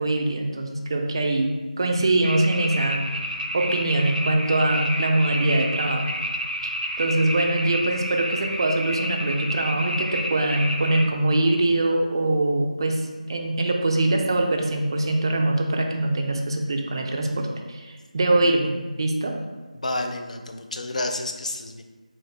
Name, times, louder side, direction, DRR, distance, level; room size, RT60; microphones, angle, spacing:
voice 1, 0.0-3.0 3.5-6.0 6.6-6.7 7.0-19.4, right 2 dB, 35° right, 3 dB, 0.4 m, -23 dB
sound 1, 2.2-11.1, equal, 90° right, 0.5 m, -30 dB
voice 2, 19.7-21.8, left 2 dB, 60° left, 5 dB, 0.4 m, -30 dB
3.5 x 2.6 x 3.6 m, 1.3 s
figure-of-eight pair, 160°, 4 cm